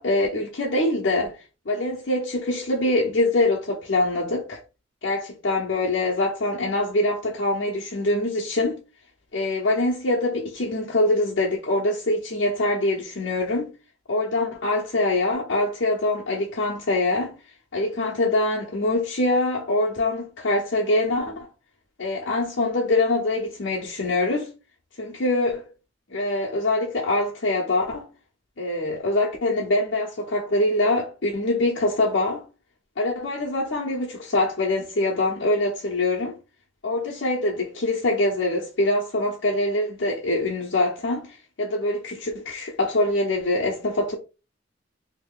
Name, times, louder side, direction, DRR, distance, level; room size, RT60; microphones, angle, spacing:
voice 1, 0.0-1.4 1.7-4.6 5.0-8.8 9.3-13.7 14.1-17.3 17.7-21.5 22.0-24.5 25.0-25.7 26.1-28.1 28.6-32.4 33.0-36.3 36.8-44.2, left 2 dB, 70° left, 0.8 m, -24 dB
2.9 x 2.7 x 3.7 m
head